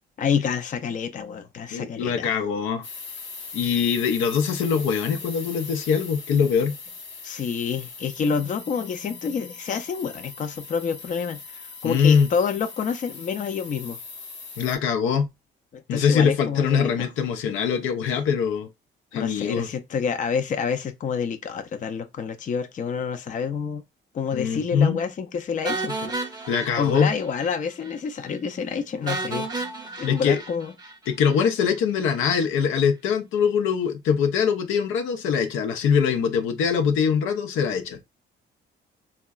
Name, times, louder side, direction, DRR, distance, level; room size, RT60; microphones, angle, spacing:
voice 1, 0.2-2.4 7.2-14.0 15.7-17.1 19.1-23.8 24.1-26.5 26.8-29.5 30.0-30.7, left 6 dB, 40° left, 0.4 m, -28 dB
voice 2, 1.7-2.8 3.5-6.8 11.8-12.3 14.6-15.3 15.9-18.7 19.1-19.7 24.3-25.0 26.5-27.1 30.1-30.4 31.1-38.0, left 6 dB, 85° left, 0.6 m, -23 dB
sound 1, 2.8-14.8, left 4 dB, 65° left, 0.9 m, -40 dB
sound 2, 25.6-27.6 27.8-27.9 28.3-28.4 29.1-31.4, right 3 dB, 20° right, 0.6 m, -32 dB
3.5 x 2.2 x 2.3 m
cardioid pair, 90°, 20 cm